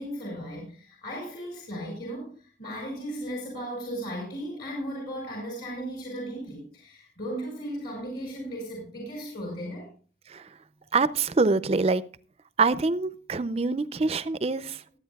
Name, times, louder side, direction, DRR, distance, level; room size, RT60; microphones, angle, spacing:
voice 1, 0.0-2.3 2.6-9.9, equal, 60° left, -2 dB, 5.3 m, -36 dB
voice 2, 10.9-12.0 12.6-14.8, right 3 dB, 35° right, 15 dB, 0.4 m, -25 dB
22.5 x 8.6 x 2.3 m, 0.40 s
head